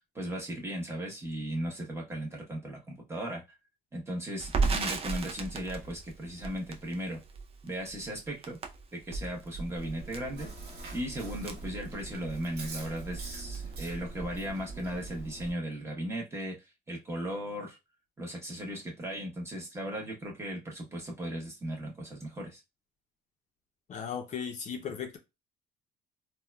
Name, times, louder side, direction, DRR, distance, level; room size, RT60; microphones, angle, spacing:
voice 1, 0.1-3.4 3.9-7.2 7.6-8.6 8.9-10.5 10.9-16.6 16.9-17.8 18.2-22.6, equal, 15° right, 0.9 m, -37 dB
Crackle, 4.4-12.5 12.8-12.9 13.2-14.0, right 4 dB, 35° right, 0.5 m, -35 dB
Chewing mastication, 9.8-15.5, right 3 dB, 70° right, 1.3 m, -42 dB
voice 2, 23.9-25.2, left 7 dB, 45° left, 0.6 m, -36 dB
3.6 x 2.1 x 2.2 m
cardioid pair, 110°, 17 cm